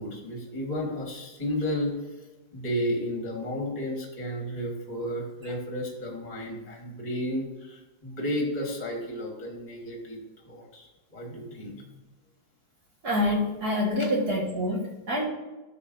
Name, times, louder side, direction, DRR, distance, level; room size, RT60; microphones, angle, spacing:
voice 1, 0.0-2.0 2.5-10.2 10.5-11.8 14.0-14.1, equal, 20° left, 0 dB, 1.6 m, -32 dB
voice 2, 13.0-15.3, left 1 dB, 50° right, -1 dB, 2.2 m, -26 dB
11.0 x 7.1 x 2.7 m, 1.1 s
omnidirectional pair, 2.2 m